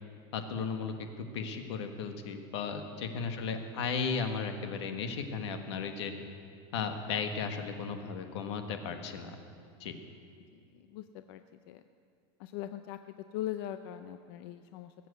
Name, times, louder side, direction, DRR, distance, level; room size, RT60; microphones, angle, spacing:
voice 1, 0.3-6.1 6.7-9.3 9.8-10.0, left 5 dB, 90° left, 6 dB, 1.5 m, -35 dB
voice 2, 10.7-11.4 11.7-11.8 12.4-14.9, left 12 dB, 60° left, 10 dB, 0.5 m, -41 dB
19.5 x 7.7 x 8.0 m, 2.4 s
supercardioid pair, 155°, 14 cm